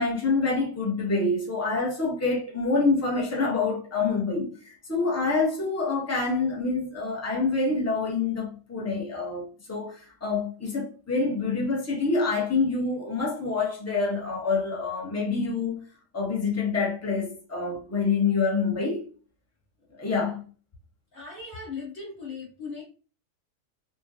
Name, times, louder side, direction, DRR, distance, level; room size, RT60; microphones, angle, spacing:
voice 1, 0.0-15.9 16.1-19.1 19.9-20.4, left 4 dB, 15° left, 0.5 m, -26 dB
voice 2, 21.1-22.8, left 4 dB, 40° left, 1.4 m, -38 dB
3.4 x 2.2 x 2.7 m
omnidirectional pair, 1.7 m